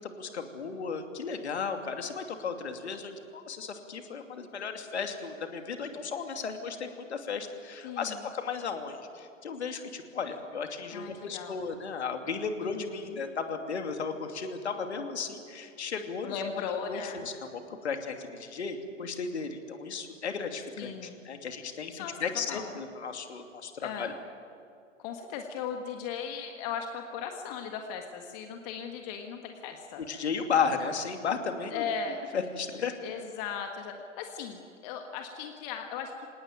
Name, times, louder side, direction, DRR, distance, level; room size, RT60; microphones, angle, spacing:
voice 1, 0.0-16.3 16.9-24.1 30.0-31.8 32.3-32.9, left 5 dB, 60° left, 5 dB, 2.8 m, -35 dB
voice 2, 7.8-8.2 10.9-11.6 12.6-13.2 16.2-17.3 20.8-21.2 22.0-22.2 22.5-22.7 23.8-24.1 25.0-30.0 31.7-32.2 33.0-36.3, left 7 dB, 30° left, 4 dB, 1.7 m, -37 dB
26.0 x 18.5 x 9.1 m, 2.5 s
figure-of-eight pair, 115°, 38 cm